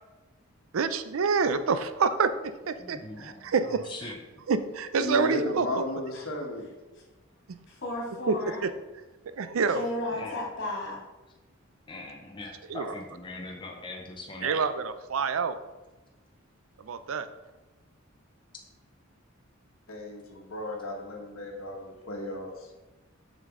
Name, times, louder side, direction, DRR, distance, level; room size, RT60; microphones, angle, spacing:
voice 1, 0.7-2.3 2.7-3.8 4.5-5.7 8.3-8.4 8.6-8.7 9.4-9.9 12.7-12.9 14.4-15.6 16.8-17.3, right 5 dB, 75° right, 11 dB, 0.5 m, -27 dB
voice 2, 2.8-4.2 10.1-10.4 11.9-14.6, left 2 dB, 25° left, 0 dB, 0.7 m, -41 dB
voice 3, 5.0-6.7 19.9-22.7, left 1 dB, 85° left, 1 dB, 1.3 m, -34 dB
voice 4, 7.7-8.6 9.7-11.0, left 1 dB, 60° left, -3 dB, 2.4 m, -34 dB
7.4 x 5.2 x 3.7 m, 1.1 s
head